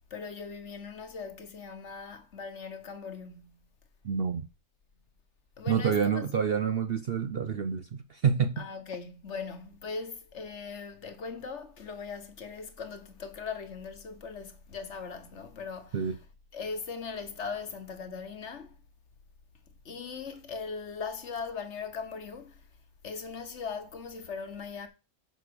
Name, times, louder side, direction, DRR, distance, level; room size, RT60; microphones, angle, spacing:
voice 1, 0.1-3.7 5.6-6.3 8.6-16.0 16.5-18.8 19.7-22.7 23.0-24.9, left 5 dB, 55° left, 1.4 m, -39 dB
voice 2, 4.0-4.5 5.7-8.6 15.9-16.2, right 7 dB, 55° right, 0.7 m, -28 dB
7.5 x 5.0 x 6.9 m
omnidirectional pair, 1.5 m